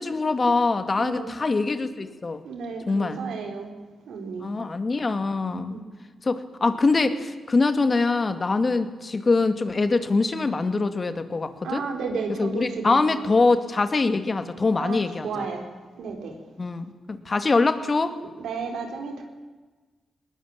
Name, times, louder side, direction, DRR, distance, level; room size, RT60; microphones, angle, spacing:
voice 1, 0.0-2.4 2.9-3.2 4.4-5.8 6.2-11.8 12.4-15.5 16.6-18.1, left 3 dB, 40° left, 9 dB, 2.3 m, -23 dB
voice 2, 1.0-1.3 2.4-3.7 4.1-4.5 5.7-5.8 11.6-13.0 14.8-15.0 15.2-15.7 16.0-16.3 18.4-19.2, right 5 dB, 85° right, 4 dB, 4.3 m, -32 dB
20.5 x 19.0 x 8.9 m, 1.3 s
cardioid pair, 60°, 0 cm